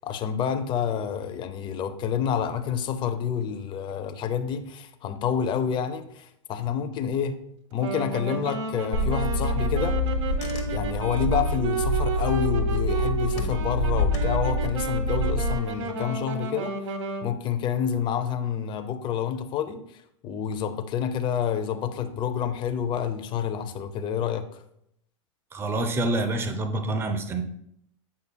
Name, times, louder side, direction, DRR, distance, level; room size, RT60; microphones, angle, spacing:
voice 1, 0.0-7.4 7.7-10.0 10.6-17.0 17.2-24.6, left 8 dB, 30° left, 9 dB, 0.6 m, -28 dB
Wind instrument woodwind instrument, 7.8-17.3, right 4 dB, 75° right, 0.9 m, -32 dB
Car / Engine, 8.9-15.5, left 1 dB, 65° left, 1.2 m, -26 dB
voice 2, 25.5-27.4, right 2 dB, 15° right, 7 dB, 0.6 m, -27 dB
8.4 x 5.3 x 2.2 m, 0.73 s
hypercardioid pair, 130°, 16 cm